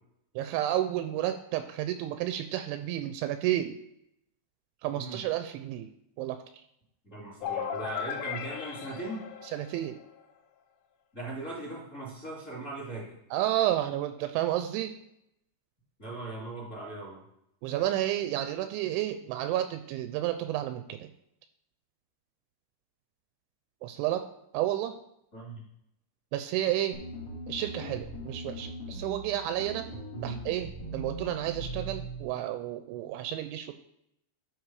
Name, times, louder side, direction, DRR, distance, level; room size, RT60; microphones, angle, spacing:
voice 1, 0.4-3.8 4.8-5.9 6.2-6.4 9.5-10.0 13.3-14.9 17.6-21.1 23.8-24.3 24.5-24.9 26.3-27.0 27.5-29.9 30.2-33.7, right 13 dB, 85° right, 9 dB, 2.8 m, -31 dB
voice 2, 7.0-9.2 11.1-13.0 16.0-17.2 25.3-25.6 30.1-30.4, right 2 dB, 20° left, -6 dB, 2.2 m, -39 dB
sound 1, 7.4-10.2, left 8 dB, 80° left, 2.8 m, -37 dB
sound 2, 26.9-32.3, right 1 dB, 45° left, 1.8 m, -40 dB
12.0 x 4.4 x 4.8 m, 0.78 s
omnidirectional pair, 5.6 m